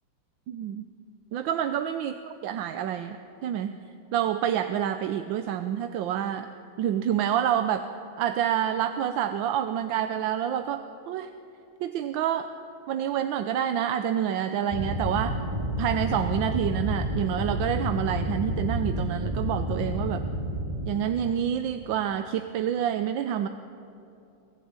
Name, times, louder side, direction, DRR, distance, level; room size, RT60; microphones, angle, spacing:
voice 1, 0.5-0.8 1.3-3.8 4.1-6.5 6.8-7.9 8.2-11.3 11.8-12.5 12.9-15.4 15.8-20.2 20.8-23.5, right 10 dB, 70° right, 9 dB, 1.3 m, -28 dB
sound 1, 14.7-21.0, equal, 15° right, 3.3 m, -30 dB
22.5 x 15.0 x 8.8 m, 2.7 s
omnidirectional pair, 2.3 m